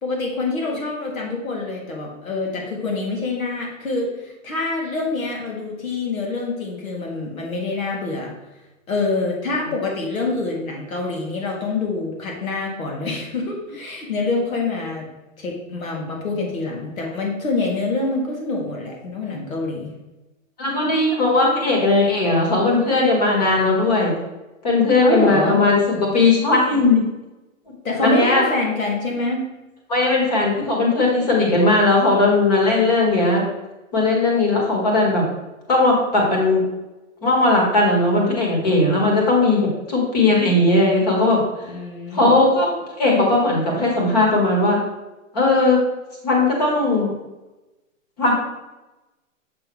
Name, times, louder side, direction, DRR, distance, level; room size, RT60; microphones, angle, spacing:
voice 1, 0.0-8.3 8.9-15.1 15.4-19.9 25.0-25.6 27.8-29.5 41.6-42.4, left 3 dB, 85° left, -1 dB, 2.3 m, -26 dB
voice 2, 20.6-24.1 24.6-27.0 28.0-28.4 29.9-33.4 33.9-35.2 35.7-36.6 37.2-41.4 42.1-44.8 45.3-45.8 46.2-47.1 48.2-48.3, left 2 dB, 30° left, -2 dB, 1.6 m, -18 dB
6.7 x 5.5 x 3.1 m, 1.1 s
hypercardioid pair, 175°, 40 cm